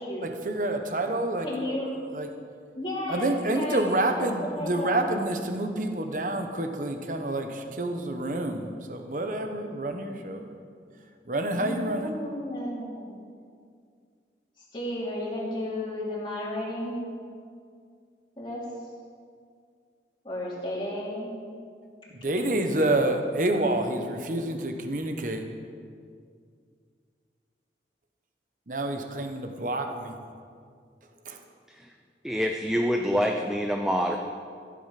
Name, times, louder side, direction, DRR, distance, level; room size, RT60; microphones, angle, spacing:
voice 1, 0.2-1.5 2.1-2.3 3.1-10.5 11.3-12.1 22.1-25.4 28.7-30.1 31.3-31.4, right 1 dB, 45° right, 5 dB, 1.1 m, -28 dB
voice 2, 1.4-1.9 2.8-5.0 11.5-13.1 14.7-17.0 18.4-18.6 20.2-21.4 23.7-24.0, left 1 dB, 25° left, -6 dB, 3.0 m, -33 dB
voice 3, 32.2-34.2, equal, 5° right, 2 dB, 0.5 m, -26 dB
15.0 x 8.7 x 5.8 m, 2.2 s
head